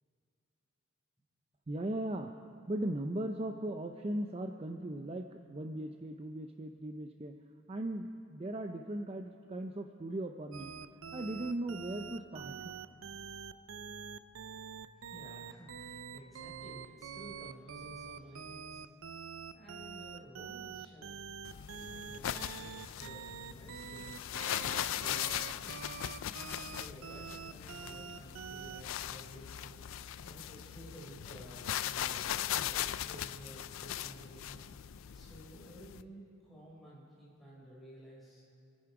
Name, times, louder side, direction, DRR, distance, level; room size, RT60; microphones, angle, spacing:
voice 1, 1.7-7.3 7.7-10.7 11.1-12.8, right 1 dB, 30° right, 5 dB, 0.5 m, -38 dB
sound 1, 10.5-28.8, right 6 dB, 75° right, 0.6 m, -45 dB
voice 2, 14.9-18.8 19.5-21.3 21.9-24.3 24.7-25.8 26.6-38.5, equal, ahead, -6 dB, 4.6 m, -53 dB
sound 2, 21.5-36.0, left 11 dB, 75° left, 0.4 m, -39 dB
26.0 x 9.6 x 4.9 m, 2.6 s
head